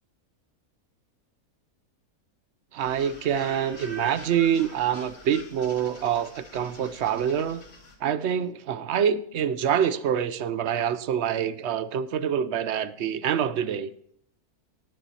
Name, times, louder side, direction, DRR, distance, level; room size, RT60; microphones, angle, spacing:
voice 1, 2.7-7.6 8.0-13.9, right 8 dB, 60° right, 14 dB, 0.7 m, -26 dB
sound 1, 2.8-8.0, left 1 dB, 45° left, 2.3 m, -44 dB
19.0 x 7.0 x 2.8 m, 0.70 s
omnidirectional pair, 1.6 m